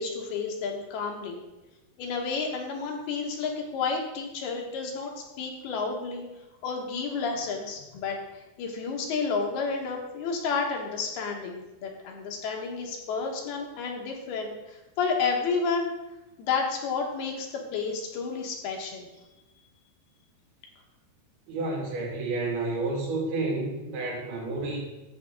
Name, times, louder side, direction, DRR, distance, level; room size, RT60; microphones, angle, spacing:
voice 1, 0.0-1.4 2.0-6.3 6.6-15.9 16.4-19.1, left 5 dB, 80° left, 1 dB, 3.3 m, -31 dB
voice 2, 21.5-24.8, right 2 dB, 75° right, -3 dB, 4.2 m, -30 dB
11.0 x 7.8 x 3.7 m, 1.0 s
omnidirectional pair, 4.5 m